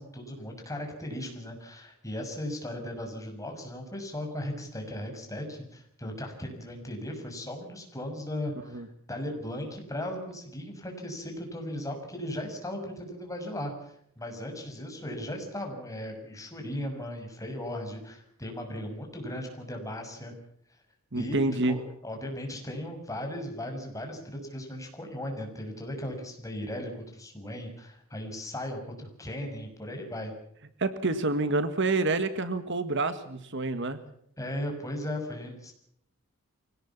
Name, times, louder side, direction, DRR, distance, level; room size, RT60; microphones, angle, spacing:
voice 1, 0.0-20.3 21.1-21.4 21.6-30.3 34.4-35.7, left 1 dB, 15° left, 3 dB, 6.4 m, -37 dB
voice 2, 21.1-21.8 30.8-34.0, right 2 dB, 60° right, 11 dB, 1.7 m, -28 dB
25.0 x 18.0 x 7.3 m, 0.69 s
head